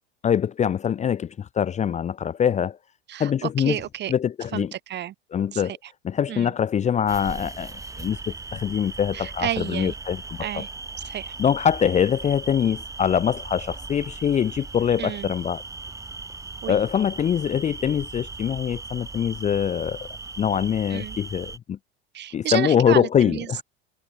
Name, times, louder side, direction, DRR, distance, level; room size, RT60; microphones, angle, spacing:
voice 1, 0.2-2.8 3.2-3.8 4.1-4.7 5.3-5.8 6.0-10.6 11.4-15.6 16.7-20.1 20.4-21.8 22.3-23.6, left 8 dB, 20° left, 0.7 m, -23 dB
voice 2, 3.1-4.1 4.5-5.1 5.5-5.9 6.3-6.5 9.1-9.9 10.4-10.7 11.0-11.3 15.0-15.3 16.6-16.7 20.9-21.2 22.1-23.6, right 12 dB, 35° right, 1.2 m, -31 dB
sound 1, 7.1-21.6, right 3 dB, 10° right, 1.3 m, -38 dB
figure-of-eight pair, 75°, 31 cm